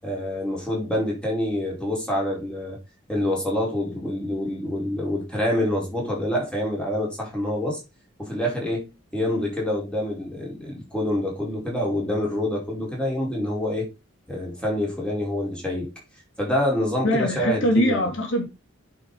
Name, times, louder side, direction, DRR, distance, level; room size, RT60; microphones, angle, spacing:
voice 1, 0.0-2.8 3.1-7.8 8.2-13.9 14.3-15.9 16.4-18.1, left 1 dB, 5° left, 4.7 m, -26 dB
voice 2, 17.0-18.4, equal, 80° left, 3.3 m, -22 dB
9.7 x 6.1 x 4.2 m
head